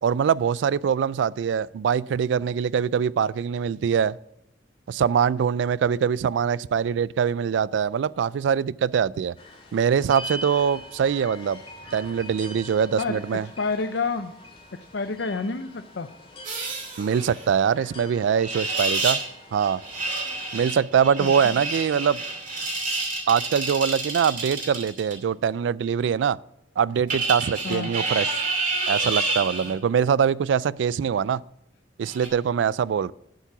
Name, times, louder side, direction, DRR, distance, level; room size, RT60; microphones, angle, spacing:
voice 1, 0.0-4.2 4.9-9.4 9.7-11.6 11.9-13.5 17.0-19.2 19.5-19.8 20.5-22.2 23.3-26.4 26.8-28.4 28.9-31.4 32.0-33.1, right 7 dB, 75° right, 0.3 m, -23 dB
sound 1, 9.4-20.8, equal, 30° left, 2.3 m, -43 dB
voice 2, 13.6-14.3 14.9-16.1 21.2-21.6 27.6-27.9, left 4 dB, 65° left, 0.6 m, -28 dB
sound 2, 16.4-17.5 18.4-19.3 19.6-25.1 27.1-29.7 32.1-32.3, right 3 dB, 45° right, 2.4 m, -29 dB
10.5 x 7.4 x 6.0 m
head